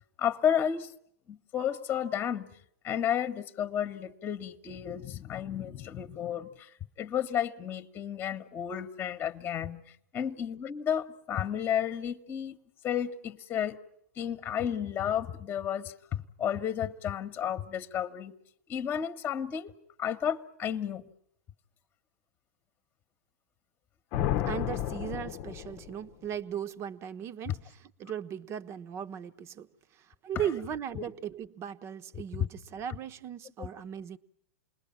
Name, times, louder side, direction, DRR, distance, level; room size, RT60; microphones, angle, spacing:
voice 1, 0.2-0.9 1.3-2.5 2.8-6.7 7.0-9.8 10.1-12.6 12.8-13.8 14.2-18.3 18.7-19.7 20.0-21.0 30.9-31.1 32.3-32.5 33.6-33.7, left 9 dB, 25° left, 1.3 m, -32 dB
sound 1, 24.1-26.1, left 12 dB, 45° left, 0.9 m, -32 dB
voice 2, 24.5-27.6 28.0-29.7 30.0-34.2, right 9 dB, 35° right, 1.2 m, -37 dB
28.5 x 21.0 x 7.4 m
hypercardioid pair, 110°, 8 cm